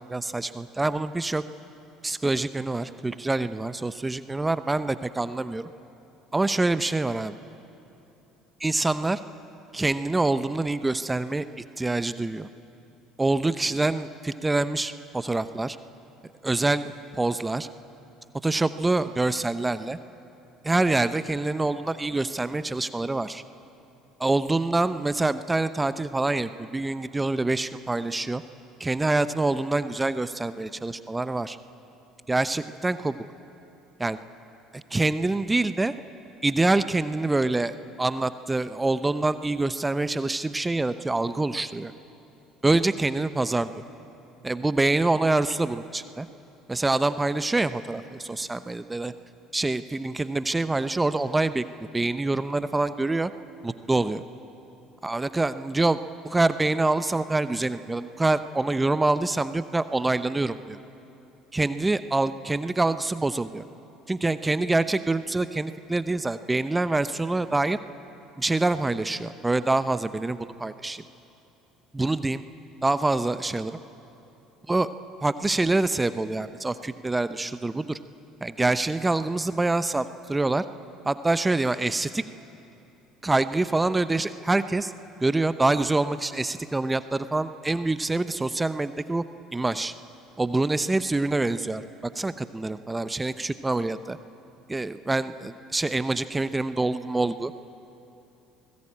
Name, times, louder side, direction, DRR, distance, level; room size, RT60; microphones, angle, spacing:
voice 1, 0.0-1.4 2.0-5.7 6.3-7.3 8.6-9.2 9.7-11.5 11.8-12.5 13.2-15.8 16.4-17.7 18.4-20.0 20.6-23.4 24.2-28.4 28.8-31.6 32.3-33.2 34.0-34.2 34.7-35.9 36.4-41.9 42.6-43.7 44.4-46.3 46.7-49.1 49.5-51.6 51.9-53.3 53.6-54.2 55.0-60.8 61.5-63.6 64.1-67.8 68.4-71.0 71.9-72.4 72.8-73.7 74.7-74.9 75.2-78.0 78.4-80.6 81.0-82.2 83.2-84.9 85.2-89.2 89.5-89.9 90.4-94.2 94.7-97.5, right 2 dB, 15° right, 13 dB, 0.8 m, -25 dB
26.5 x 19.5 x 8.8 m, 2.9 s
figure-of-eight pair, 60°, 0 cm